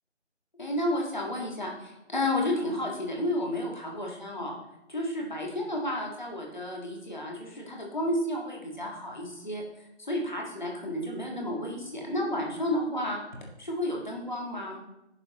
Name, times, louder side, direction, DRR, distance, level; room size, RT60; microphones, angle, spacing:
voice 1, 0.6-4.5 4.9-9.6 10.0-13.2 13.6-14.8, left 1 dB, 40° left, -1 dB, 1.9 m, -31 dB
10.5 x 6.9 x 3.1 m, 0.89 s
figure-of-eight pair, 180°, 36 cm